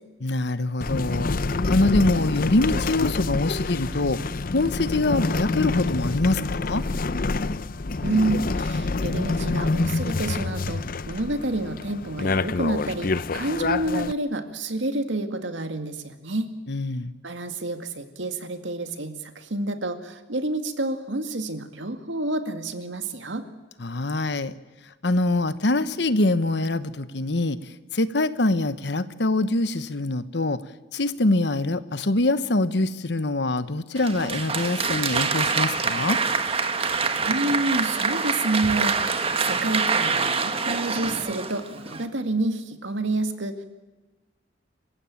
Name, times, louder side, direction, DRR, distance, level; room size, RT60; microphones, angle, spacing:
voice 1, 0.2-1.3 1.7-4.2 4.5-6.8 16.7-17.1 23.8-24.5 25.0-30.6 30.9-36.2, left 2 dB, 65° left, 14 dB, 1.1 m, -24 dB
sound 1, 0.8-14.1, left 3 dB, 50° left, 0.7 m, -27 dB
voice 2, 8.0-16.5 17.2-23.5 37.3-39.0 39.4-43.6, right 2 dB, 90° right, 8 dB, 2.1 m, -28 dB
Applause, 34.0-42.1, right 5 dB, 30° right, 1.5 m, -25 dB
27.5 x 15.5 x 8.9 m, 1.2 s
head